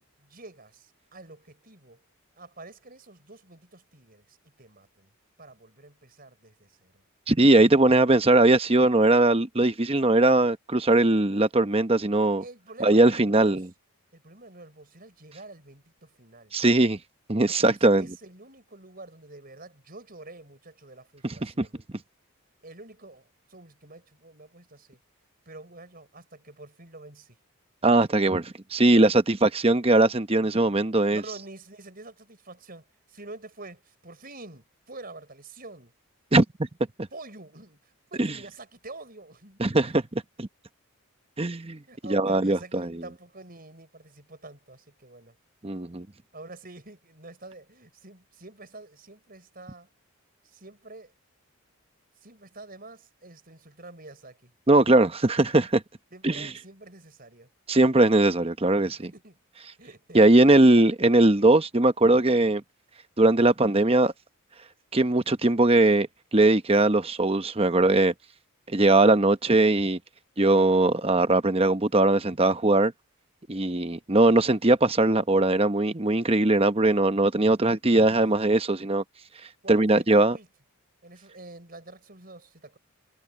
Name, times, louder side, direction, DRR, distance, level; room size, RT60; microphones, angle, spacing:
voice 1, 0.0-2.0 2.4-5.1 5.4-7.0 12.4-13.6 14.1-16.6 17.7-21.8 22.6-25.0 25.5-27.4 30.4-30.8 31.1-35.9 37.1-39.6 41.9-45.3 46.3-49.9 50.4-51.1 52.2-54.5 56.1-57.5 59.0-59.4 59.8-60.4 77.9-78.4 79.6-80.5 81.0-82.8, right 2 dB, 40° right, 6.1 m, -47 dB
voice 2, 7.3-12.4 12.8-13.7 16.5-17.0 17.3-18.1 21.2-21.7 27.8-31.2 36.3-36.4 38.2-38.3 39.6-40.5 41.4-43.0 45.6-46.1 54.7-55.8 56.2-56.5 57.7-59.1 60.1-62.6 63.2-64.1 64.9-68.1 68.7-70.0 70.4-72.9 73.5-79.0 79.7-80.4, right 2 dB, 25° right, 0.9 m, -20 dB
head